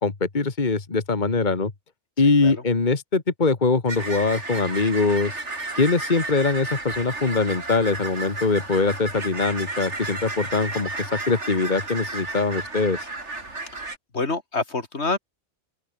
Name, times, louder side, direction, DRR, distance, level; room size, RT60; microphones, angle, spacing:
voice 1, 0.0-1.7 2.2-5.4 5.8-13.1, left 4 dB, 40° left, 1.9 m, -22 dB
sound 1, 3.9-14.0, right 3 dB, 85° right, 4.0 m, -33 dB
voice 2, 14.1-15.2, left 3 dB, 70° left, 3.0 m, -27 dB
open air
omnidirectional pair, 1.2 m